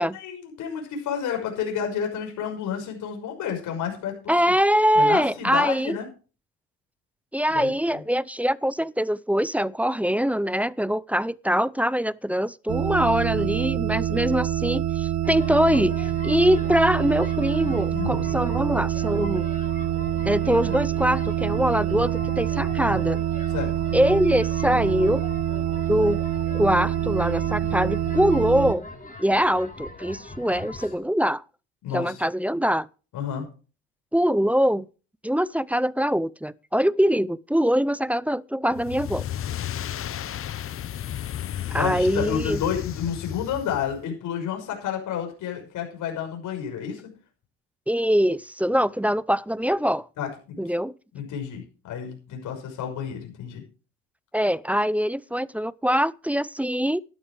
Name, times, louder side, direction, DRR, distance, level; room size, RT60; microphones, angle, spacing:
voice 1, 0.0-4.5 4.9-6.1 7.5-8.0 13.3-13.5 17.6-18.3 23.5-23.7 31.8-32.2 33.1-33.5 41.7-47.0 50.2-50.6 51.1-53.6, left 8 dB, 60° left, 5.9 m, -31 dB
voice 2, 4.3-6.0 7.3-19.5 20.3-23.2 23.9-25.2 25.9-26.2 26.5-28.9 29.2-31.4 31.9-32.9 34.1-34.9 35.2-39.3 41.7-42.6 47.9-50.1 50.6-50.9 54.3-57.0, equal, 5° right, 0.5 m, -23 dB
sound 1, 12.7-28.7, right 11 dB, 55° right, 1.5 m, -26 dB
sound 2, 15.2-31.0, left 2 dB, 25° left, 7.3 m, -41 dB
sound 3, 38.7-44.0, left 11 dB, 40° left, 0.9 m, -33 dB
12.5 x 11.5 x 4.8 m
supercardioid pair, 75°, 34 cm